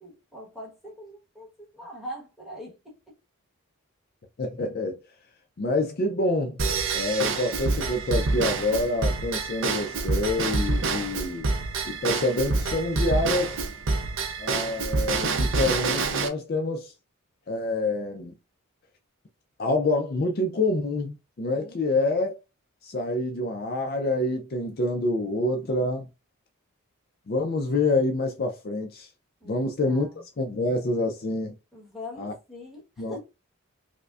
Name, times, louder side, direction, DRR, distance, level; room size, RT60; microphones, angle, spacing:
voice 1, 0.0-3.0 21.5-21.8 29.4-30.2 31.7-33.2, equal, ahead, 1.1 m, -42 dB
voice 2, 4.4-5.0 5.6-6.6 6.9-11.5 11.8-13.6 14.4-16.9 17.5-18.3 19.6-22.4 22.8-26.0 27.3-29.1 29.5-30.1 30.4-31.5 32.2-32.3 33.0-33.2, left 2 dB, 45° left, 0.4 m, -27 dB
Drum kit / Drum / Bell, 6.6-16.3, right 3 dB, 55° right, 0.5 m, -27 dB
5.0 x 2.1 x 2.4 m
head